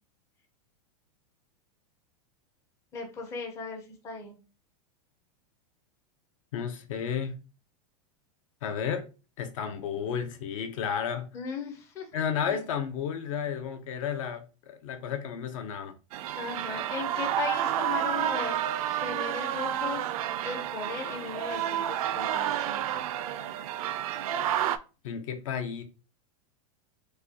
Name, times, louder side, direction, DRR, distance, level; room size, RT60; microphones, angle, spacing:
voice 1, 2.9-4.4 11.3-12.1 12.5-12.6 16.4-18.6 18.8-20.1 20.4-23.0, left 4 dB, 15° left, 0.5 m, -37 dB
voice 2, 6.5-7.4 8.6-9.1 9.4-11.3 12.1-15.9 25.0-25.8, left 7 dB, 60° left, 0.7 m, -32 dB
sound 1, 16.1-24.8, right 11 dB, 70° right, 0.4 m, -30 dB
4.8 x 2.2 x 2.8 m
supercardioid pair, 170°, 19 cm